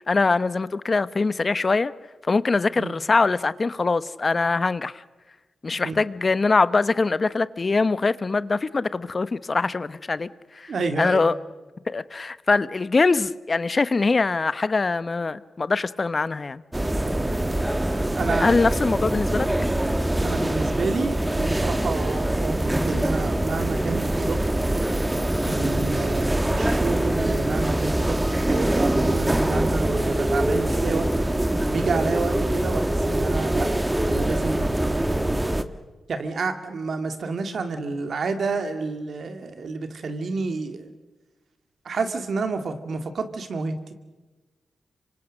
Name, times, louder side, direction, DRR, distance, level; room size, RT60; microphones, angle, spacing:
voice 1, 0.1-1.9 2.3-4.9 5.6-10.3 10.5-10.7 11.0-11.3 11.9-16.6 18.4-19.5, left 3 dB, 45° left, 16 dB, 1.0 m, -23 dB
voice 2, 10.7-11.2 18.2-18.7 20.2-22.6 22.8-24.5 25.4-31.1 31.7-33.7 34.0-35.0 36.1-40.9 41.8-43.9, right 4 dB, 70° right, 7 dB, 2.4 m, -29 dB
sound 1, 16.7-35.6, right 1 dB, 15° right, 1.7 m, -24 dB
26.5 x 24.0 x 6.6 m, 1.2 s
supercardioid pair, 50°, 0 cm